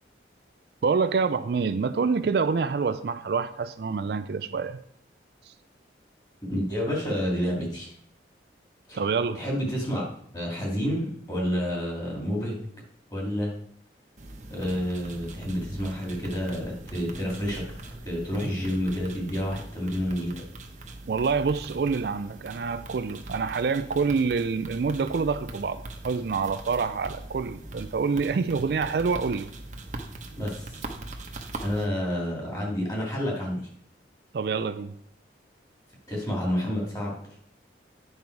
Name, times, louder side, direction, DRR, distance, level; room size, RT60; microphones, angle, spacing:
voice 1, 0.8-4.8 8.9-9.4 21.1-29.5 34.3-34.9, right 5 dB, 60° right, 0.4 m, -27 dB
voice 2, 6.5-7.9 8.9-9.0 9.3-10.0 10.3-12.6 13.1-13.5 14.5-17.7 18.1-20.4 30.4-30.8 31.6-33.7 36.1-37.2, equal, 20° left, 2.4 m, -29 dB
sound 1, 14.2-31.8, right 2 dB, 40° right, 0.9 m, -41 dB
9.4 x 5.5 x 4.6 m
head